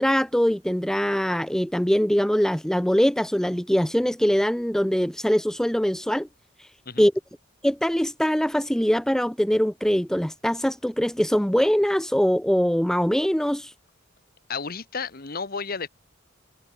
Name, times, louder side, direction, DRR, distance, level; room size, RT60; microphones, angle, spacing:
voice 1, 0.0-6.3 7.0-7.1 7.6-13.7, equal, 5° left, 0.7 m, -22 dB
voice 2, 14.5-15.9, left 5 dB, 50° left, 1.8 m, -32 dB
head